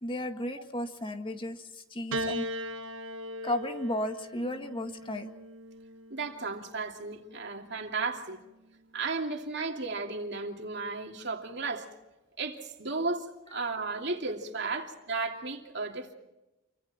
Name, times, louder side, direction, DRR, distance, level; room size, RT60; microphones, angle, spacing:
voice 1, 0.0-2.5 3.4-5.3 14.6-14.8, left 1 dB, 25° left, 1.9 m, -34 dB
Piano, 2.1-6.6 7.6-8.4, equal, 75° right, 1.4 m, -38 dB
voice 2, 6.1-8.4 8.9-11.9 12.4-16.1, right 3 dB, 60° right, 2.8 m, -34 dB
29.0 x 25.0 x 4.4 m
head